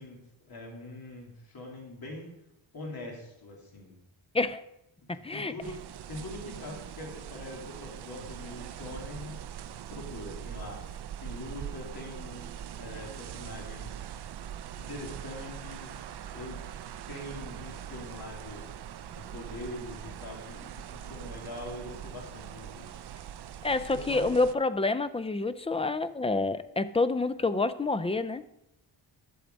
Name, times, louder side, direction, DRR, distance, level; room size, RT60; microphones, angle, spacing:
voice 1, 0.0-2.3 2.7-4.0 5.0-5.8 6.1-9.4 9.9-10.8 11.2-14.0 14.8-16.6 17.1-18.6 19.1-23.0 23.9-24.3, left 2 dB, 50° left, -1 dB, 3.0 m, -43 dB
voice 2, 5.1-5.5 23.6-28.4, left 3 dB, 15° left, 13 dB, 0.3 m, -28 dB
sound 1, 5.6-24.6, right 10 dB, 60° right, 0.5 m, -42 dB
12.0 x 7.1 x 5.2 m, 0.86 s
wide cardioid pair, 135°, 46 cm